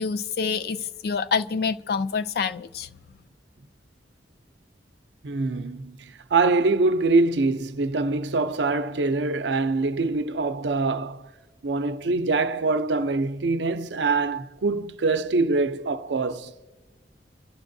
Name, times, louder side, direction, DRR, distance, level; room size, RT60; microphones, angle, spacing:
voice 1, 0.0-2.9, left 5 dB, 60° left, 0.4 m, -27 dB
voice 2, 5.2-11.3 11.6-16.5, right 3 dB, 80° right, 0.5 m, -24 dB
27.0 x 11.5 x 2.6 m
head